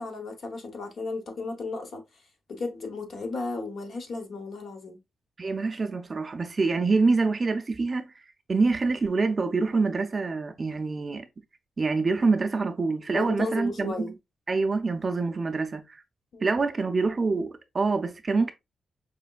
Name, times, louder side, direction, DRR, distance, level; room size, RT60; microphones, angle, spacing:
voice 1, 0.0-2.0 2.5-5.0 13.1-14.1 16.3-16.6, left 3 dB, 50° left, 0.8 m, -34 dB
voice 2, 5.4-8.2 8.5-11.3 11.8-14.1 14.5-16.0 16.4-18.5, right 4 dB, 25° right, 0.4 m, -26 dB
4.9 x 3.1 x 2.2 m
wide cardioid pair, 180°, 0 cm